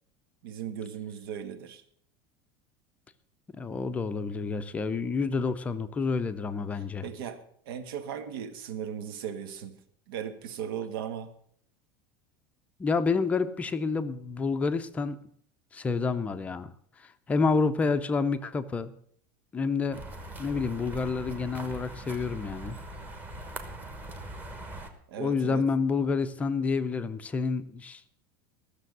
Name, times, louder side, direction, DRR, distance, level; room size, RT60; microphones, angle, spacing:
voice 1, 0.4-1.8 7.0-9.8 10.1-11.3 25.1-25.6, right 8 dB, 85° right, 10 dB, 1.5 m, -37 dB
voice 2, 3.5-7.1 12.8-15.2 15.7-16.7 17.0-18.9 19.5-20.0 20.4-22.8 25.2-28.0, left 4 dB, 10° left, 9 dB, 0.5 m, -29 dB
sound 1, 19.9-24.9, right 1 dB, 15° right, 1.1 m, -41 dB
14.5 x 6.8 x 7.8 m, 0.63 s
cardioid pair, 180°, 12 cm